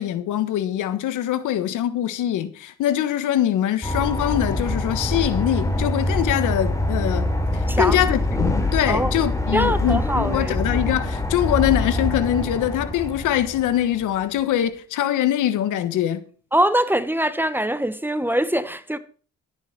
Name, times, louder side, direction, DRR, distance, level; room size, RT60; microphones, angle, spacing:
voice 1, 0.0-7.3 7.8-16.2, left 11 dB, 85° left, 1.6 m, -23 dB
sound 1, 3.8-14.0, left 2 dB, 10° left, 3.5 m, -24 dB
voice 2, 7.7-8.0 8.9-9.1 9.5-10.6 16.5-19.0, right 1 dB, 5° right, 1.0 m, -22 dB
13.5 x 8.9 x 6.0 m
cardioid pair, 90°, 30 cm